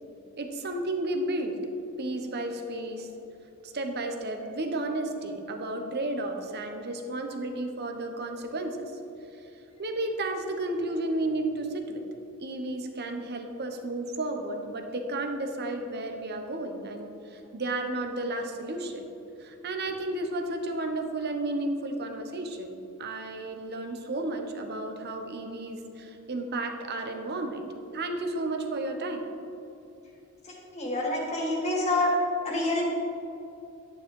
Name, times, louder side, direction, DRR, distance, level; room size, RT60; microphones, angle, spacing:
voice 1, 0.4-1.6 2.0-3.1 3.6-8.8 9.8-12.0 12.4-19.1 19.4-27.7 27.9-29.2, right 2 dB, 50° right, 4 dB, 1.1 m, -32 dB
voice 2, 30.4-32.1 32.4-32.8, left 2 dB, 30° left, -3 dB, 2.3 m, -27 dB
12.0 x 9.9 x 3.8 m, 2.8 s
head